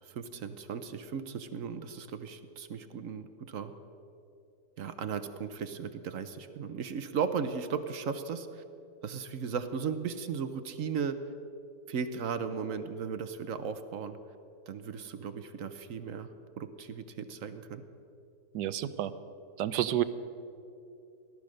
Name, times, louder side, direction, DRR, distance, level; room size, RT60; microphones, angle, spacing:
voice 1, 0.0-3.7 4.8-8.6 9.0-11.2 11.9-14.2 14.7-16.3 16.6-17.8, right 6 dB, 60° right, 10 dB, 1.1 m, -36 dB
voice 2, 18.5-19.1 19.6-20.0, right 12 dB, 85° right, 13 dB, 1.3 m, -29 dB
17.5 x 12.0 x 6.5 m, 2.6 s
omnidirectional pair, 1.7 m